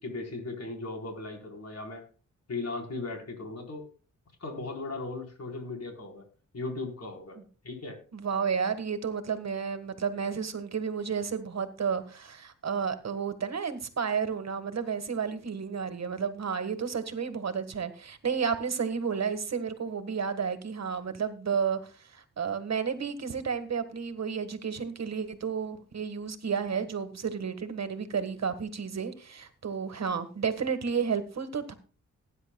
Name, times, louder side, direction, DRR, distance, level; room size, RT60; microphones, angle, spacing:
voice 1, 0.0-2.0 2.5-3.9 4.4-6.3 6.5-7.4 7.6-8.0, left 3 dB, 55° left, 2 dB, 4.2 m, -37 dB
voice 2, 8.1-21.8 22.4-31.7, right 6 dB, 60° right, 10 dB, 1.6 m, -31 dB
19.0 x 9.9 x 2.3 m, 0.38 s
cardioid pair, 75°, 30 cm